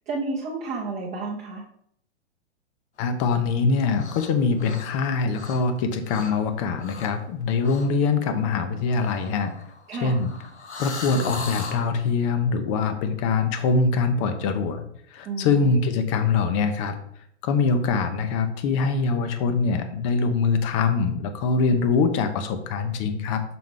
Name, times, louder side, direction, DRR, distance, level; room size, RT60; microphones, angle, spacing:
voice 1, 0.1-1.6 9.9-10.2 15.2-15.7, right 3 dB, 20° right, -4 dB, 0.8 m, -31 dB
voice 2, 3.0-9.5 10.0-10.3 10.8-14.8 15.1-17.0 17.4-23.4, left 4 dB, 30° left, 8 dB, 0.6 m, -23 dB
sound 1, 3.9-4.3 4.6-5.8 6.1-6.4 6.8-7.2 7.6-7.9 8.9-11.9, left 4 dB, 75° left, 1.0 m, -38 dB
5.9 x 4.6 x 3.7 m, 0.68 s
figure-of-eight pair, 110°, 34 cm